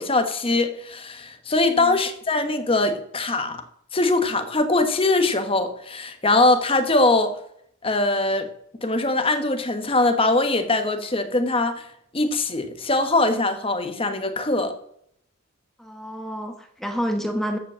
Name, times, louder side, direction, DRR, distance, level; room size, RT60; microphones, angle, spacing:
voice 1, 0.0-3.6 3.9-7.4 7.8-8.5 8.8-11.9 12.1-14.7, left 2 dB, 25° left, 1.2 m, -22 dB
voice 2, 15.8-17.6, equal, ahead, 1.1 m, -29 dB
14.0 x 5.3 x 7.4 m
head